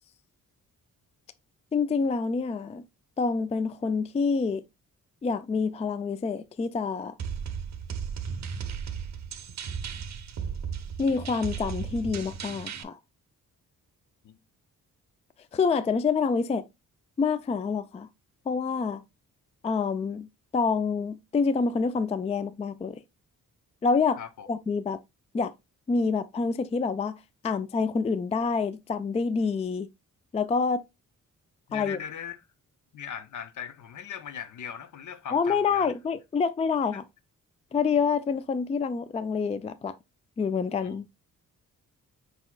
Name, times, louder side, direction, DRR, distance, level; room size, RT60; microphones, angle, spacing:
voice 1, 1.7-2.8 3.2-4.6 5.2-7.1 11.0-13.0 15.5-16.6 17.2-18.1 18.5-19.0 19.6-20.3 20.5-23.0 23.8-24.2 24.5-25.0 25.3-25.5 25.9-27.2 27.4-29.9 30.3-30.8 31.7-32.0 35.3-37.0 37.7-39.9 40.4-41.1, left 5 dB, 20° left, 0.3 m, -27 dB
sound 1, 7.2-12.8, right 7 dB, 55° right, 0.7 m, -35 dB
voice 2, 24.2-24.5 31.7-32.4 32.9-35.9 36.9-37.0 40.8-41.0, left 8 dB, 65° left, 0.7 m, -39 dB
4.7 x 4.1 x 2.3 m
cardioid pair, 80°, 34 cm